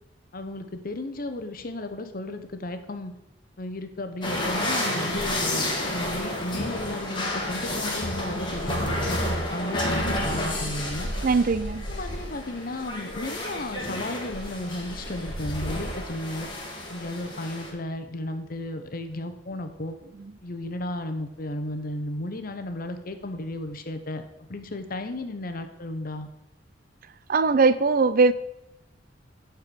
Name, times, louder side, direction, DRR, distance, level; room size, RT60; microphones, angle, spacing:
voice 1, 0.3-3.1 3.6-11.1 11.9-16.5 16.9-20.0 20.4-24.2 24.5-26.3, left 1 dB, 50° left, 1.0 m, -34 dB
sound 1, 4.2-17.7, left 1 dB, 25° left, 2.2 m, -30 dB
voice 2, 11.2-11.8 27.3-28.3, right 4 dB, 50° right, 0.5 m, -20 dB
10.5 x 4.6 x 6.9 m
head